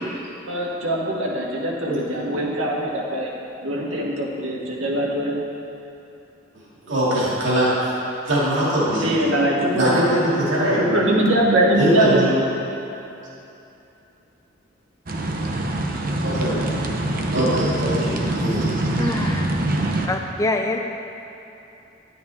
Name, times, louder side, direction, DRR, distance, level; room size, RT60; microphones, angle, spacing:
voice 1, 0.5-3.3 3.6-5.4 9.0-10.1 10.8-12.2 17.3-17.5, right 1 dB, 85° right, -3 dB, 1.5 m, -22 dB
voice 2, 6.8-7.7 8.3-9.1 9.7-10.8 11.7-12.4 16.2-16.6 17.3-19.3, equal, 70° right, -7 dB, 2.4 m, -22 dB
sound 1, 15.1-20.1, right 1 dB, 45° right, 0.7 m, -24 dB
voice 3, 19.0-19.4 20.0-20.8, left 2 dB, 15° left, 3 dB, 0.3 m, -24 dB
11.0 x 8.6 x 3.6 m, 2.8 s
head